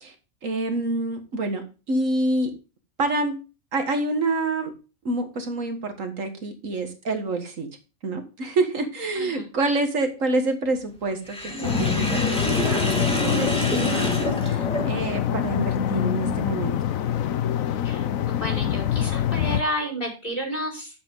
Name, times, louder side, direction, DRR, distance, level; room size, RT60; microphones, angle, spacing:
voice 1, 0.4-2.5 3.0-3.4 3.7-4.7 5.1-7.7 8.0-16.7, right 2 dB, 65° right, 6 dB, 1.9 m, -27 dB
Sink (filling or washing), 11.3-15.2, equal, 5° left, 2.8 m, -27 dB
sound 1, 11.6-19.6, left 10 dB, 75° left, 1.1 m, -25 dB
voice 2, 17.8-20.9, equal, 40° left, 0 dB, 5.0 m, -31 dB
11.5 x 7.6 x 3.7 m, 0.31 s
omnidirectional pair, 1.5 m